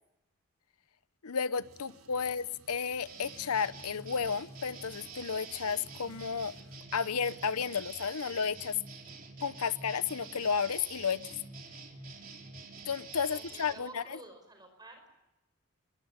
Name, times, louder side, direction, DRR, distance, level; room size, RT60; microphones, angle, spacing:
voice 1, 1.2-6.5 6.9-8.8 9.4-11.3 12.8-14.0, left 6 dB, 90° left, 16 dB, 0.8 m, -32 dB
sound 1, 1.6-6.8, right 2 dB, 70° right, 3.9 m, -60 dB
sound 2, 3.1-13.7, right 4 dB, 40° right, 3.5 m, -47 dB
voice 2, 13.3-15.1, right 2 dB, 20° right, 5 dB, 5.2 m, -51 dB
22.0 x 20.5 x 8.9 m, 0.90 s
head